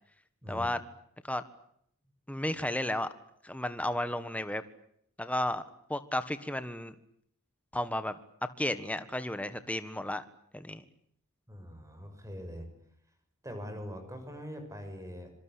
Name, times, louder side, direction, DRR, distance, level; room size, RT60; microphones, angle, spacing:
voice 1, 0.5-0.8 1.3-1.4 2.3-3.1 3.4-4.6 5.2-5.6 5.9-6.9 7.7-8.1 8.6-10.2 10.5-10.8, left 1 dB, 5° left, 11 dB, 1.6 m, -33 dB
voice 2, 11.5-12.7 13.4-15.3, equal, 15° right, 7 dB, 7.1 m, -42 dB
26.0 x 24.5 x 8.5 m, 0.69 s
head